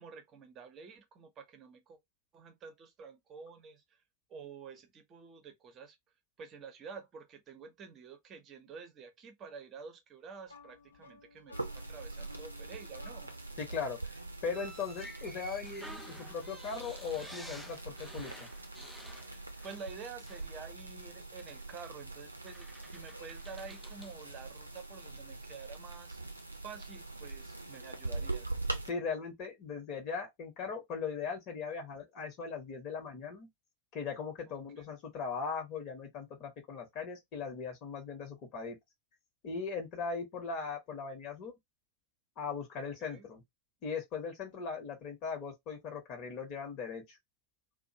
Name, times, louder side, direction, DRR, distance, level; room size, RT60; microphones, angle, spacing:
voice 1, 0.0-2.0 2.3-4.0 4.3-6.0 6.4-13.3 19.3-26.2 26.6-28.6 34.5-34.8 42.8-43.2, right 5 dB, 30° right, 0.8 m, -49 dB
sound 1, 10.5-13.6, left 3 dB, 75° left, 0.6 m, -55 dB
sound 2, 11.5-28.9, right 2 dB, 85° right, 0.5 m, -43 dB
voice 2, 13.6-14.1 14.4-18.5 28.9-33.5 33.9-38.8 39.4-41.5 42.4-43.4 43.8-47.2, left 5 dB, 40° left, 1.0 m, -39 dB
sound 3, 14.5-20.0 20.3-20.5 21.7-21.9 22.5-24.2, equal, ahead, 0.4 m, -51 dB
2.5 x 2.1 x 2.7 m
figure-of-eight pair, 90°, 0 cm